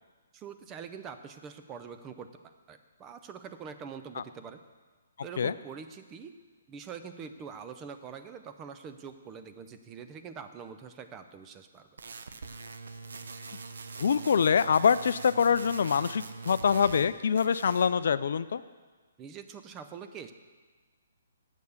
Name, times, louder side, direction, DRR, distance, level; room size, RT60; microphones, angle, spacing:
voice 1, 0.3-4.6 5.2-6.3 6.7-11.9 19.2-20.3, right 6 dB, 20° right, 9 dB, 0.6 m, -44 dB
sound 1, 12.0-17.1 17.4-17.9, right 4 dB, 75° right, 0.7 m, -43 dB
voice 2, 14.0-18.6, left 7 dB, 65° left, 15 dB, 0.3 m, -25 dB
8.1 x 6.4 x 7.1 m, 1.4 s
hypercardioid pair, 145°, 0 cm